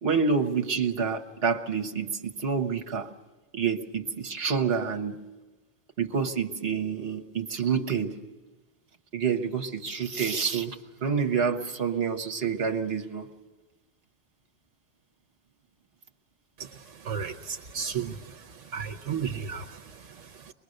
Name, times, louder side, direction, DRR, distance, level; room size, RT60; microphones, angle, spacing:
voice 1, 0.0-3.1 3.5-5.2 6.0-8.1 9.1-13.3, right 6 dB, 55° right, 6 dB, 1.5 m, -28 dB
voice 2, 17.0-18.4 18.7-20.5, right 7 dB, 75° right, 6 dB, 1.2 m, -34 dB
24.0 x 20.5 x 6.5 m, 1.2 s
omnidirectional pair, 1.2 m